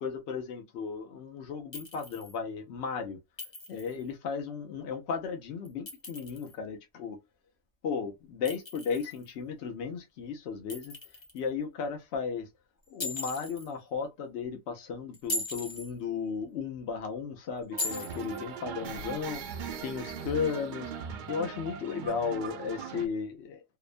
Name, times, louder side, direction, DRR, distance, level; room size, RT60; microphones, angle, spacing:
voice 1, 0.0-3.2 3.7-7.2 7.8-11.0 11.3-12.5 12.9-19.4 19.8-23.6, left 6 dB, 65° left, 0.9 m, -35 dB
Chink clink, 1.7-2.4 3.4-4.0 5.6-6.5 8.5-9.3 10.7-11.4 13.0-13.7 15.1-15.9 17.8-18.4, left 2 dB, 30° left, 0.6 m, -38 dB
sound 1, 17.7-23.1, right 6 dB, 55° right, 0.5 m, -39 dB
2.8 x 2.1 x 2.4 m
omnidirectional pair, 1.3 m